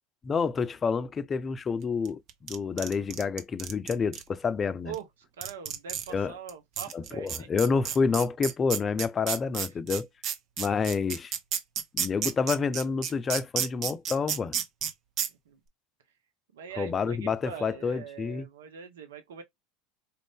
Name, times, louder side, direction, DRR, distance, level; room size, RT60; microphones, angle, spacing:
voice 1, 0.2-4.9 6.1-6.3 6.9-10.1 10.6-11.3 11.9-14.6 16.8-18.5, left 5 dB, 30° left, 0.4 m, -28 dB
sound 1, 2.0-4.2 4.9-5.0 5.4-6.1 6.5-6.6 6.8-14.9 15.2-15.3, right 9 dB, 50° right, 0.9 m, -31 dB
voice 2, 5.4-7.5 15.3-15.6 16.5-19.4, right 7 dB, 80° right, 0.8 m, -42 dB
4.4 x 2.5 x 3.5 m
hypercardioid pair, 85°, 0 cm